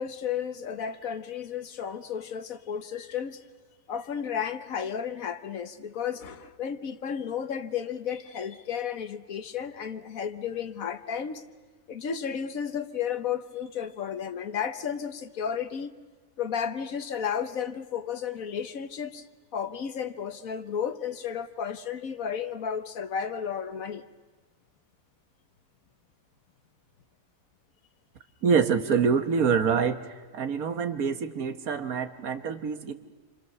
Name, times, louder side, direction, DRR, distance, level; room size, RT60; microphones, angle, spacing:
voice 1, 0.0-3.4 3.9-11.4 11.9-15.9 16.4-19.2 19.5-24.0, left 7 dB, 65° left, 1.5 m, -33 dB
voice 2, 28.4-32.9, right 6 dB, 75° right, 1.7 m, -26 dB
28.5 x 26.0 x 6.8 m
omnidirectional pair, 1.6 m